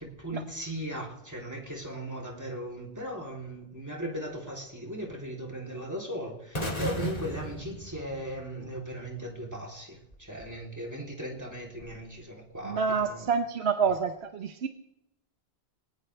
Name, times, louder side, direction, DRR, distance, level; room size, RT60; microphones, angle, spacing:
voice 1, 0.0-13.3 13.9-14.0, equal, 15° right, -1 dB, 3.2 m, -38 dB
sound 1, 6.5-8.6, equal, 35° left, 2.4 m, -34 dB
voice 2, 12.6-14.7, right 6 dB, 75° right, 7 dB, 1.1 m, -28 dB
20.0 x 19.0 x 3.3 m, 0.84 s
omnidirectional pair, 1.1 m